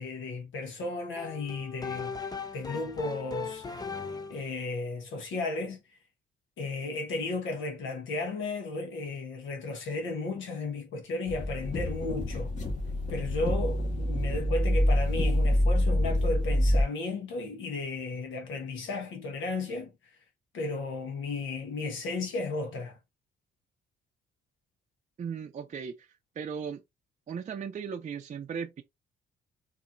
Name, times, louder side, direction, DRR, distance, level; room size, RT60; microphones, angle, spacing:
voice 1, 0.0-3.7 4.3-5.8 6.6-12.5 13.1-19.9 20.5-23.0, left 3 dB, 75° left, 1.1 m, -34 dB
sound 1, 1.2-4.5, left 5 dB, 20° left, 0.7 m, -38 dB
sound 2, 11.3-16.8, left 1 dB, 40° left, 1.6 m, -26 dB
voice 2, 25.2-26.1 26.4-26.8 27.3-28.8, right 6 dB, 40° right, 0.5 m, -37 dB
4.1 x 2.7 x 2.6 m
cardioid pair, 90°, 20 cm